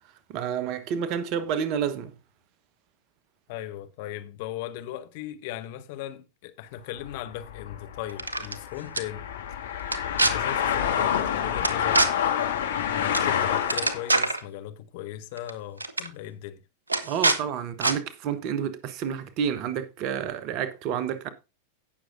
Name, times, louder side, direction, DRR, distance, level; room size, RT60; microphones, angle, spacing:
voice 1, 0.3-2.1 17.0-21.3, right 8 dB, 40° right, 1.1 m, -29 dB
voice 2, 3.5-9.6 10.2-12.1 12.7-16.6, left 12 dB, 50° left, 0.9 m, -38 dB
sound 1, 7.0-14.1, left 9 dB, 65° left, 2.2 m, -28 dB
sound 2, 8.1-8.6 9.0-9.1 9.8-10.3 11.6-12.1 13.1-13.3 13.6-14.4 15.4-15.5 15.8-16.1 16.9-17.4 17.8-18.0, right 2 dB, 80° right, 1.0 m, -24 dB
17.0 x 6.4 x 2.6 m
figure-of-eight pair, 90°, 0 cm